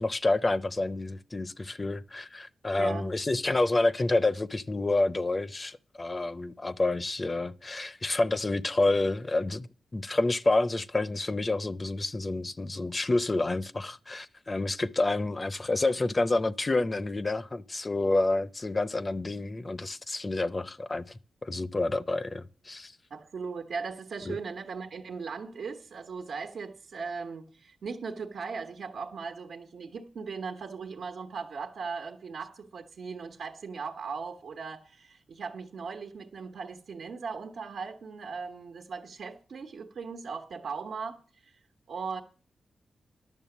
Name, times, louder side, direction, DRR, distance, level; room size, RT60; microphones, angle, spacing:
voice 1, 0.0-9.7 9.9-21.0 21.4-22.9 24.3-24.4, left 2 dB, 35° left, 0.7 m, -28 dB
voice 2, 2.8-3.1 23.1-41.5 41.9-42.2, right 5 dB, 80° right, 1.2 m, -38 dB
11.0 x 6.7 x 7.2 m
cardioid pair, 50°, 0 cm